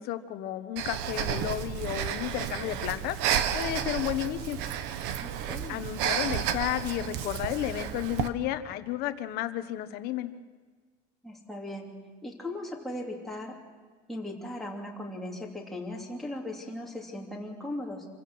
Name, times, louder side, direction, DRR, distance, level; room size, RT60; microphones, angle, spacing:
voice 1, 0.0-4.6 5.7-10.3, left 13 dB, 55° left, 10 dB, 1.2 m, -32 dB
Breathing, 0.8-8.3, right 9 dB, 65° right, 1.3 m, -31 dB
voice 2, 5.2-5.8 11.2-11.9 12.2-13.6 14.1-18.1, left 1 dB, ahead, -3 dB, 2.8 m, -38 dB
26.5 x 15.5 x 6.2 m, 1.5 s
cardioid pair, 175°, 19 cm